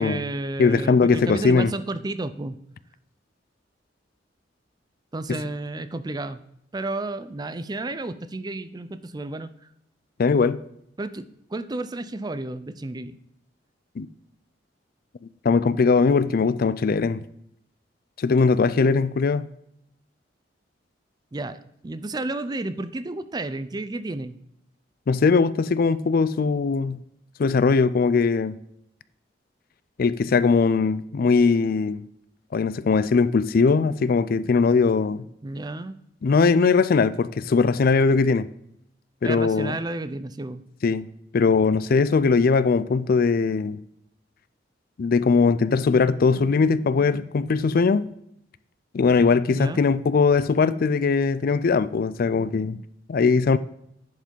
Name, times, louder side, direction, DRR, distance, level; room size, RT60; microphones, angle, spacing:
voice 1, 0.0-2.6 5.1-6.4 6.7-9.5 11.0-13.2 21.3-21.6 21.8-24.4 35.4-35.9 39.2-40.6 49.5-49.8, right 2 dB, 20° right, 0.5 m, -31 dB
voice 2, 0.6-1.7 5.3-5.4 10.2-10.6 14.0-14.1 15.4-17.2 18.2-19.5 25.1-27.0 27.4-28.6 30.0-32.1 32.5-35.2 36.2-38.5 39.2-39.8 40.8-41.1 41.3-43.8 45.0-48.1 48.9-52.8 53.1-53.6, left 4 dB, 50° left, 0.4 m, -20 dB
10.5 x 5.2 x 5.3 m
head